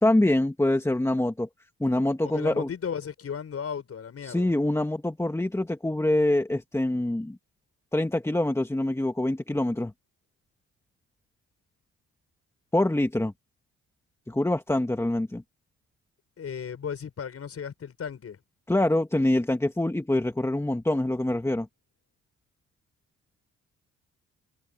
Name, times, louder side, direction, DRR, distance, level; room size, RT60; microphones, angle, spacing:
voice 1, 0.0-1.5 1.8-2.7 4.2-7.4 7.9-9.9 12.7-13.3 14.3-15.4 18.7-21.7, left 1 dB, 10° left, 2.0 m, -25 dB
voice 2, 2.2-4.5 16.4-18.4, left 7 dB, 55° left, 6.5 m, -35 dB
cardioid pair, 85°, 29 cm